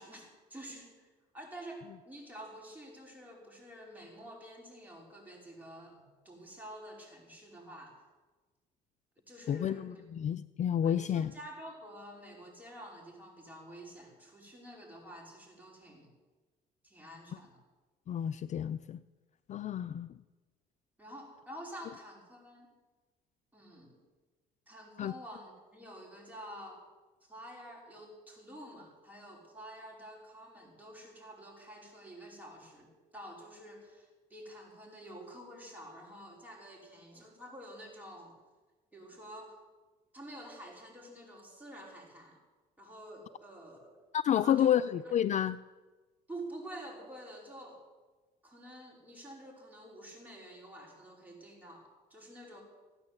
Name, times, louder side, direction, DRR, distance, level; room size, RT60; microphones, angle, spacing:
voice 1, 0.0-8.0 9.3-10.0 10.8-16.1 16.8-17.6 21.0-22.7 23.5-24.0 24.7-26.8 27.2-38.3 38.9-39.6 40.1-42.4 42.8-44.0 44.3-45.1 46.3-47.8 48.4-52.6, right 1 dB, 10° right, -2 dB, 5.1 m, -49 dB
voice 2, 9.5-11.3 18.1-19.0 19.5-20.1 25.0-25.1 44.1-45.6, left 10 dB, 45° left, 14 dB, 0.4 m, -30 dB
15.5 x 9.5 x 8.1 m, 1.3 s
cardioid pair, 110°, 17 cm